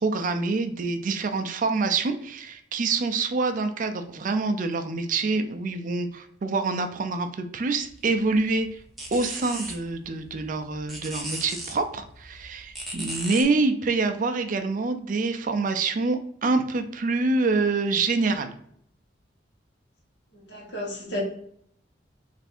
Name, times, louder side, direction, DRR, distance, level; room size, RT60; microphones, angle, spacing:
voice 1, 0.0-8.8 9.1-18.5, right 3 dB, 45° right, 7 dB, 0.4 m, -26 dB
sound 1, 7.8-13.4, right 1 dB, ahead, 0.7 m, -38 dB
voice 2, 20.5-21.2, equal, 70° left, -2 dB, 1.3 m, -32 dB
3.3 x 2.6 x 4.2 m, 0.68 s
head